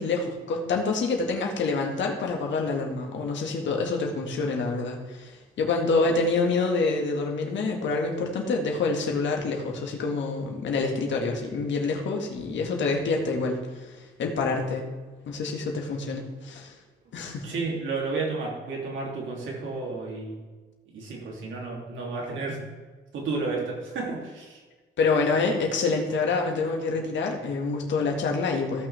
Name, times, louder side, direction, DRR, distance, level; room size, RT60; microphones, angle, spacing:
voice 1, 0.0-14.9 15.3-16.7 17.1-17.5 25.0-28.9, left 3 dB, 70° left, 1 dB, 2.0 m, -27 dB
voice 2, 17.4-20.4 20.9-22.7 23.1-24.6, right 3 dB, 75° right, -2 dB, 3.0 m, -32 dB
16.5 x 6.1 x 3.5 m, 1.3 s
cardioid pair, 90°, 20 cm